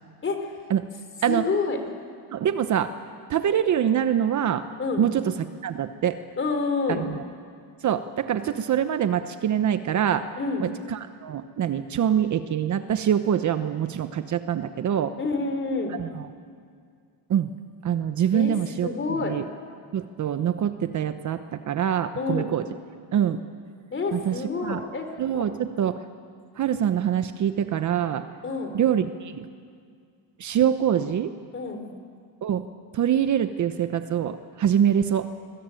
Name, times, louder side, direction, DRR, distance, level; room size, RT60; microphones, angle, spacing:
voice 1, 1.3-1.8 4.8-5.1 6.4-7.1 10.4-10.7 15.2-16.0 18.3-18.5 18.8-19.3 22.2-22.5 23.9-25.1 28.4-28.8 31.5-31.8, left 4 dB, 25° left, 6 dB, 3.8 m, -28 dB
voice 2, 2.3-2.9 3.3-4.7 5.0-6.2 7.0-7.2 7.8-10.3 10.6-15.2 16.0-16.3 17.3-17.5 17.8-18.9 19.2-19.4 19.9-22.6 23.1-23.4 24.1-24.3 24.6-24.8 25.2-26.0 26.6-28.2 28.7-29.5 30.4-31.3 32.4-32.6 32.9-35.3, right 9 dB, 40° right, 10 dB, 1.0 m, -24 dB
25.5 x 21.5 x 9.1 m, 2.2 s
cardioid pair, 135°, 43 cm